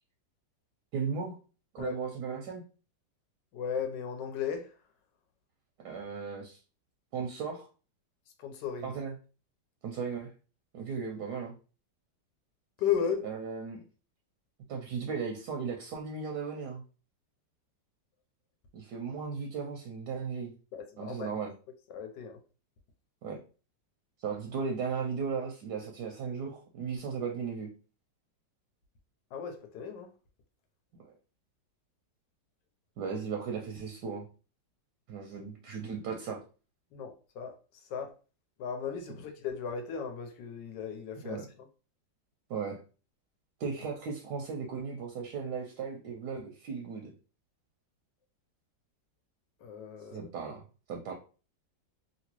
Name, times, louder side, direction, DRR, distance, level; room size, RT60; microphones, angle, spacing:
voice 1, 0.9-1.4 1.7-2.6 5.8-6.6 7.1-7.7 8.8-9.1 9.8-10.3 10.7-11.5 13.2-13.8 14.7-16.8 18.7-20.5 21.0-21.5 23.2-23.4 24.2-27.7 31.0-31.1 33.0-34.3 35.1-36.4 41.2-41.5 42.5-42.8 43.6-47.1 50.1-51.1, right 5 dB, 70° right, 1.1 m, -36 dB
voice 2, 3.5-4.7 8.4-9.0 12.8-13.2 20.7-21.3 21.9-22.4 29.3-30.1 36.9-37.5 37.9-38.1 38.6-41.4 49.6-50.3, left 7 dB, 75° left, 1.3 m, -35 dB
2.9 x 2.9 x 2.9 m
omnidirectional pair, 2.0 m